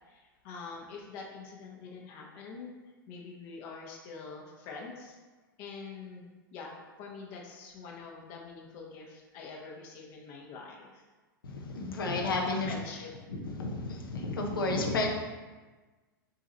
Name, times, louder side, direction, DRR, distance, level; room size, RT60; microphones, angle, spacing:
voice 1, 0.1-2.7 3.1-5.2 5.6-11.0 12.5-13.2, left 4 dB, 40° left, -2 dB, 1.1 m, -45 dB
voice 2, 11.4-12.7 13.3-15.1, left 2 dB, 70° left, 0 dB, 1.1 m, -32 dB
6.6 x 3.7 x 4.3 m, 1.3 s
figure-of-eight pair, 100°, 12 cm